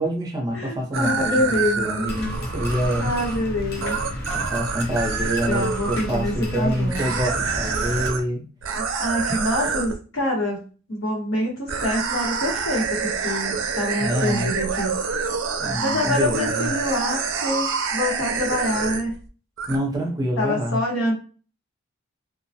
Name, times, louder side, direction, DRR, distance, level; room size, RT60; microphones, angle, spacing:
voice 1, 0.0-3.1 4.3-8.4 14.0-14.5 15.6-16.7 19.7-20.8, equal, 20° right, 0 dB, 0.6 m, -26 dB
voice 2, 0.5-2.1 3.0-4.0 5.5-7.1 8.7-14.9 15.8-19.1 20.4-21.1, left 1 dB, 85° left, -1 dB, 1.0 m, -26 dB
sound 1, 0.9-6.0 6.9-8.2 8.6-9.9 11.7-19.2 19.6-19.8, right 5 dB, 70° right, 0.4 m, -27 dB
sound 2, 2.1-8.1, left 1 dB, 55° left, 0.6 m, -32 dB
2.2 x 2.1 x 2.7 m, 0.36 s
head